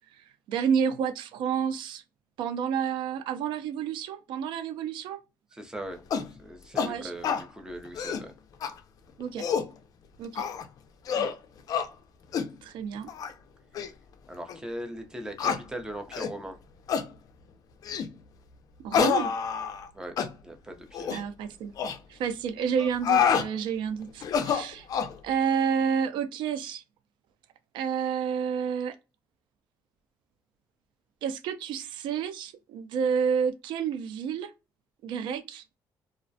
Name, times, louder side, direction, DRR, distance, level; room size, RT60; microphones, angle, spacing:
voice 1, 0.5-2.0 2.4-5.2 6.8-7.1 9.2-9.5 10.2-10.4 11.1-11.3 12.6-13.1 18.8-19.3 21.1-21.7 22.1-24.9 25.2-26.8 27.7-28.9 31.2-34.5 35.0-35.6, right 7 dB, 80° right, 0.3 m, -30 dB
voice 2, 5.5-6.0 6.3-8.3 14.3-16.5 19.9-20.2 20.4-21.2, right 1 dB, 10° right, 0.5 m, -39 dB
sound 1, 6.1-6.3 6.8-6.9 7.2-7.4 7.9-8.3 8.6-8.7 9.2-9.7 10.4-10.7 11.1-11.4 11.7-11.9 12.3-12.5 13.1-13.3 13.7-13.9 14.5-14.6 15.4-15.6 16.1-16.3 16.9-17.1 17.8-18.1 18.9-19.9 20.2-20.3 20.9-21.2 21.8-22.0 22.8-23.5 24.2-25.1, left 7 dB, 50° left, 0.4 m, -27 dB
2.3 x 2.0 x 2.5 m
cardioid pair, 135°, 8 cm